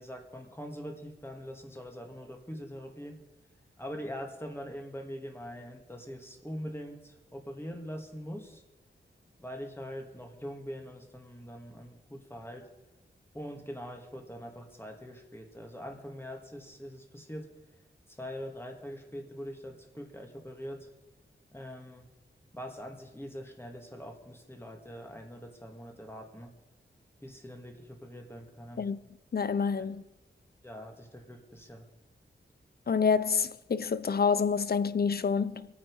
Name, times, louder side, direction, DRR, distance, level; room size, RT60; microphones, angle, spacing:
voice 1, 0.0-3.2 3.8-8.6 9.4-12.7 13.3-17.5 18.1-20.9 21.5-22.1 22.5-26.5 27.2-28.9 29.8-29.9 30.6-31.9, equal, 10° left, 2.1 m, -43 dB
voice 2, 29.3-30.0 32.9-35.7, left 5 dB, 50° left, 0.6 m, -27 dB
25.5 x 9.0 x 4.8 m
wide cardioid pair, 100°, 20 cm